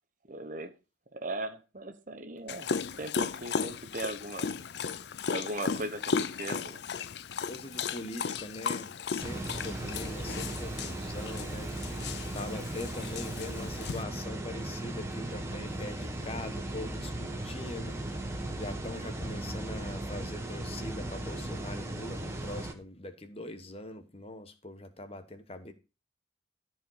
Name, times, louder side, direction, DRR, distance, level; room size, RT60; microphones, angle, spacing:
voice 1, 0.3-0.7 1.1-2.7 3.0-4.5 5.3-6.8, right 2 dB, 45° right, 1.0 m, -38 dB
Dog, 2.5-14.0, left 6 dB, 60° left, 0.5 m, -35 dB
voice 2, 7.5-11.7 12.3-25.7, left 1 dB, 30° left, 1.1 m, -42 dB
sound 1, 9.2-22.7, right 1 dB, 15° right, 1.3 m, -37 dB
13.5 x 5.1 x 5.6 m
head